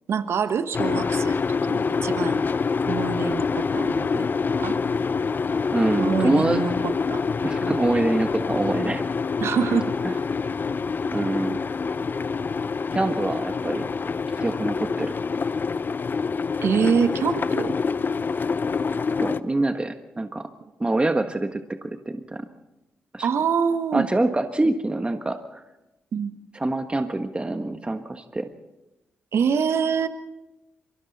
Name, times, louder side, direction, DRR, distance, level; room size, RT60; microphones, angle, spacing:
voice 1, 0.1-2.4 2.9-4.3 4.6-4.7 6.0-7.2 7.6-7.8 9.4-9.9 16.6-17.8 23.2-24.1 26.1-26.3 29.3-30.1, right 6 dB, 65° right, 10 dB, 1.2 m, -25 dB
sound 1, 0.7-19.4, left 5 dB, 45° left, 0.7 m, -26 dB
voice 2, 5.7-6.6 7.4-9.0 10.0-10.1 11.1-11.6 12.9-13.8 14.4-15.1 19.2-20.5 20.8-22.4 23.1-23.3 23.9-25.6 26.5-28.5, right 2 dB, 20° right, 7 dB, 1.4 m, -25 dB
28.5 x 23.0 x 4.2 m, 0.99 s
supercardioid pair, 45°, 5 cm